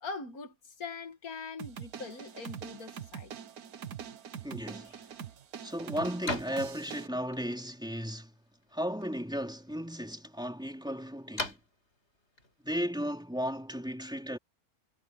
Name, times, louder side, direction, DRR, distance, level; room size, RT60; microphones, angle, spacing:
voice 1, 0.0-3.3, left 4 dB, 85° left, 2.3 m, -42 dB
sound 1, 1.6-7.1, right 8 dB, 85° right, 1.6 m, -44 dB
voice 2, 4.4-5.0 5.6-8.3 8.7-11.6 12.6-14.4, equal, 5° right, 3.5 m, -35 dB
sound 2, 4.6-13.8, left 2 dB, 50° left, 4.7 m, -45 dB
omnidirectional pair, 1.5 m